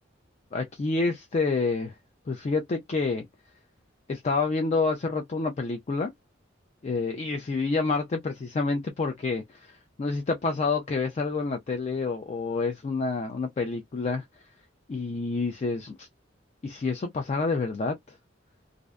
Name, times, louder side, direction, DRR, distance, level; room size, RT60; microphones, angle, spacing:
voice 1, 0.5-2.0 2.3-3.2 4.1-6.1 6.8-14.2 14.9-16.1 16.6-18.0, left 3 dB, 35° left, 0.3 m, -28 dB
2.5 x 2.1 x 2.4 m
head